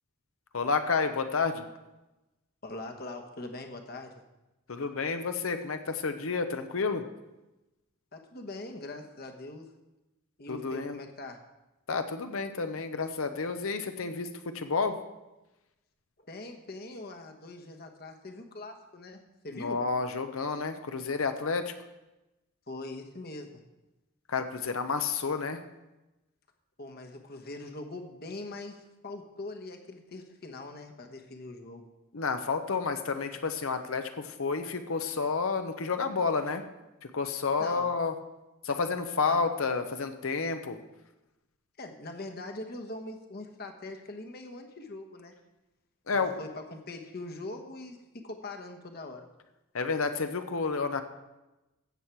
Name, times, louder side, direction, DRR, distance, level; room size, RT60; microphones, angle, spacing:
voice 1, 0.5-1.6 4.7-7.0 10.5-11.0 11.9-14.3 14.5-15.0 19.5-21.7 24.3-25.6 32.1-36.6 37.1-38.1 38.6-40.8 46.1-46.4 49.7-51.0, left 4 dB, 70° left, 8 dB, 0.8 m, -30 dB
voice 2, 2.6-4.2 8.1-9.7 10.4-11.4 16.2-19.8 22.7-23.6 26.8-31.9 37.6-38.0 39.2-39.4 41.8-45.3 46.1-49.3, left 2 dB, 45° left, 4 dB, 1.1 m, -42 dB
15.5 x 7.4 x 4.6 m, 1.0 s
head